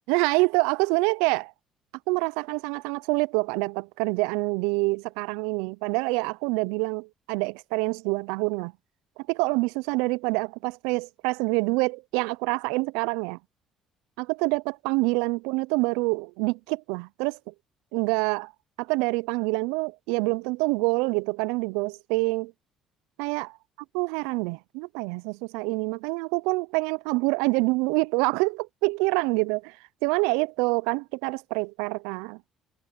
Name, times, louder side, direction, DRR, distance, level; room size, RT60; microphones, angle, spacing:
voice 1, 0.1-1.5 2.1-8.7 9.3-13.4 14.2-17.5 17.9-18.5 18.8-22.5 23.2-23.6 23.9-29.8 30.0-32.4, right 27 dB, 75° right, 0.8 m, -26 dB
hypercardioid pair, 55°, 0 cm